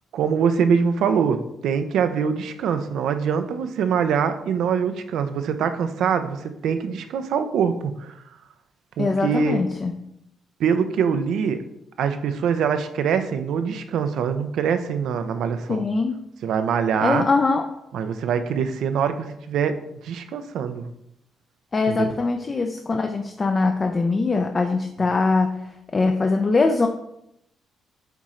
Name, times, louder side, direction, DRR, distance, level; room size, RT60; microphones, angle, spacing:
voice 1, 0.1-8.1 9.0-9.6 10.6-11.6 12.0-15.8 16.4-17.3 17.9-19.7 20.0-20.8 21.9-22.1, right 7 dB, 75° right, 9 dB, 0.5 m, -23 dB
voice 2, 9.0-9.9 15.7-16.2 17.0-17.6 21.7-25.5 25.9-26.9, left 3 dB, 35° left, 4 dB, 0.5 m, -22 dB
8.1 x 3.1 x 3.7 m, 0.80 s
cardioid pair, 90°, 0 cm